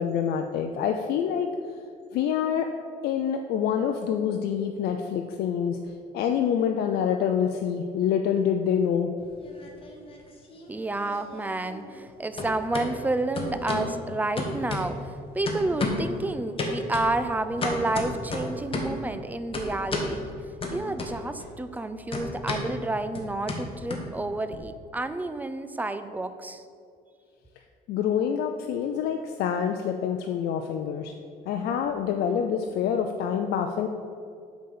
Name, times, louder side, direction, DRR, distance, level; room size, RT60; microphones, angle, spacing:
voice 1, 0.0-1.5 2.1-2.7 3.0-5.8 6.1-9.1 27.9-31.1 31.5-33.9, left 8 dB, 70° left, 4 dB, 0.5 m, -26 dB
sound 1, 9.2-10.2 10.5-12.1 12.4-12.9 13.4-13.9 14.4-15.2 15.5-16.1 16.6-19.0 19.5-20.1 20.6-21.4 21.7-24.6, left 2 dB, 30° left, 1.3 m, -32 dB
voice 2, 10.7-20.4 20.7-26.6, right 2 dB, 10° right, 11 dB, 0.4 m, -30 dB
8.0 x 4.1 x 6.7 m, 2.3 s
cardioid pair, 110°, 17 cm